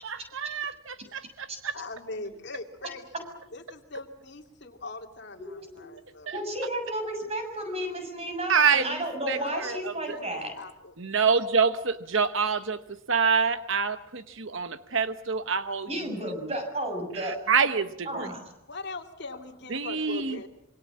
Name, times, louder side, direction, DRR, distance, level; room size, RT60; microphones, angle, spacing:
voice 1, 0.0-1.7 8.5-8.8 9.3-10.2 11.0-12.8 13.1-15.9 17.1-18.3 19.7-20.4, right 5 dB, 60° right, 10 dB, 1.0 m, -26 dB
voice 2, 1.7-6.3 9.3-10.2 10.5-10.9 11.3-11.4 18.7-20.5, left 2 dB, 50° left, 4 dB, 2.6 m, -41 dB
voice 3, 5.4-5.8 6.3-10.5 15.9-17.5 18.0-18.5, right 1 dB, 30° right, 5 dB, 6.8 m, -33 dB
27.0 x 24.5 x 7.4 m, 0.80 s
head